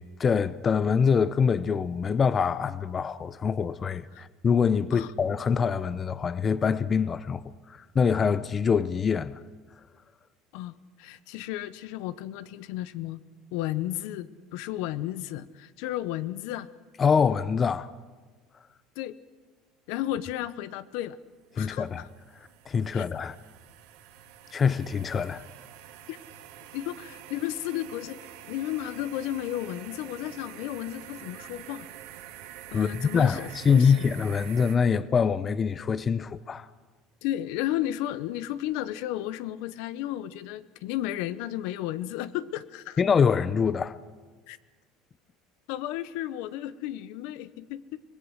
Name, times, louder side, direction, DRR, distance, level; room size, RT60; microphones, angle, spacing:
voice 1, 0.0-7.4 7.9-9.3 17.0-17.9 21.6-22.0 22.7-23.4 24.5-25.4 32.7-36.7 43.0-44.0, left 6 dB, 30° left, 0.6 m, -24 dB
voice 2, 10.5-13.2 13.5-16.7 19.0-19.2 19.9-21.2 21.6-22.1 22.9-23.1 26.1-26.2 26.7-31.9 32.7-34.1 37.2-43.0 44.5-44.6 45.7-48.0, left 13 dB, 75° left, 0.7 m, -33 dB
sound 1, 20.9-34.8, right 11 dB, 85° right, 1.9 m, -47 dB
24.5 x 18.0 x 6.4 m
cardioid pair, 130°, 0 cm